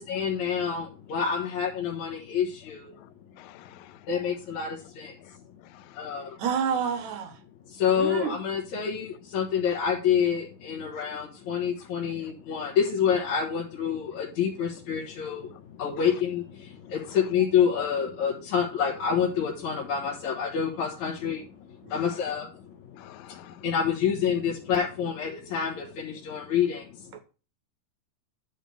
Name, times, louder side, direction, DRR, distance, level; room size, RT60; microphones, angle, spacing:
voice 1, 0.0-2.9 4.1-5.2 6.0-6.3 7.7-15.5 15.8-21.4 21.9-22.5 23.6-26.8, left 7 dB, 60° left, 2.7 m, -27 dB
voice 2, 3.4-4.0 5.2-5.4 5.6-6.1 9.7-9.8 10.9-11.1 21.9-22.0 22.9-23.6, left 15 dB, 85° left, 2.3 m, -51 dB
voice 3, 6.4-7.4 7.9-8.4 21.8-22.1 27.1-27.2, right 7 dB, 65° right, 2.2 m, -29 dB
9.9 x 3.7 x 6.8 m
omnidirectional pair, 3.9 m